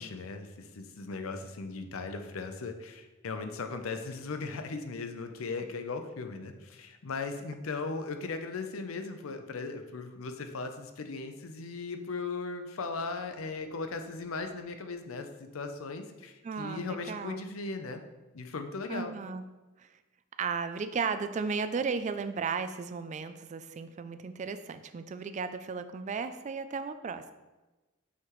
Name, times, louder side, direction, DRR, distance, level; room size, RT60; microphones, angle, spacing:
voice 1, 0.0-18.0 18.3-19.1, left 4 dB, 85° left, 7 dB, 0.6 m, -38 dB
voice 2, 16.4-17.5 18.9-19.5 19.8-19.9 20.4-27.3, right 5 dB, 35° right, 11 dB, 0.3 m, -35 dB
5.9 x 5.8 x 3.1 m, 1.1 s
head